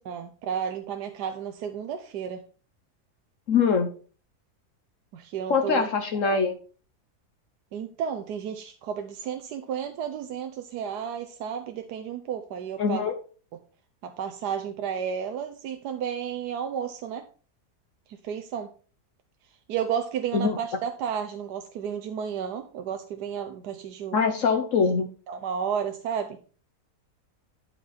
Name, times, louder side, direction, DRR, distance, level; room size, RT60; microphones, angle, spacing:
voice 1, 0.1-2.4 5.1-5.9 6.3-6.4 7.7-13.1 14.0-17.2 18.1-18.7 19.7-24.2 25.3-26.4, right 8 dB, 80° right, 6 dB, 1.3 m, -32 dB
voice 2, 3.5-3.9 5.5-6.6 12.8-13.1 20.3-20.6 24.1-25.1, left 5 dB, 60° left, 5 dB, 1.1 m, -23 dB
11.5 x 5.1 x 4.2 m, 0.38 s
omnidirectional pair, 1.7 m